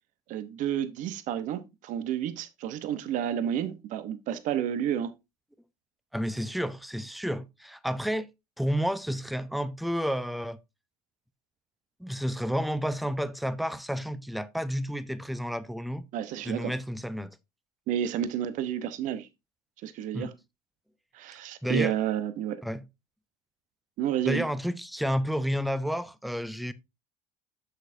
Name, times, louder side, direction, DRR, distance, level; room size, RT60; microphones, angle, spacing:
voice 1, 0.3-5.1 16.1-16.7 17.9-19.3 19.8-20.3 21.1-22.6 24.0-24.4, right 10 dB, 65° right, 1.0 m, -30 dB
voice 2, 6.1-8.3 8.6-10.6 12.0-16.0 16.4-17.4 20.1-20.3 21.6-21.9 22.6-22.8 24.3-26.7, equal, ahead, 0.7 m, -30 dB
8.0 x 6.5 x 2.6 m
supercardioid pair, 100°, 14 cm